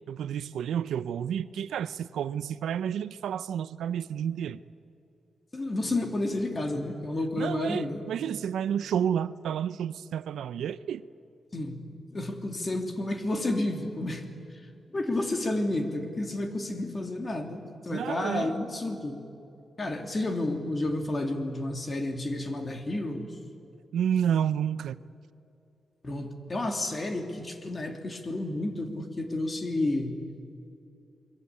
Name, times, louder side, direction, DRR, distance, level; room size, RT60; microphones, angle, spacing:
voice 1, 0.1-4.6 7.4-11.0 17.9-18.5 23.9-25.0, right 9 dB, 90° right, 15 dB, 0.7 m, -30 dB
voice 2, 5.5-8.1 11.5-11.8 12.1-14.3 14.9-19.2 19.8-23.3 26.0-30.2, left 2 dB, 30° left, 5 dB, 3.1 m, -31 dB
29.0 x 22.0 x 8.6 m, 2.7 s
cardioid pair, 105°, 0 cm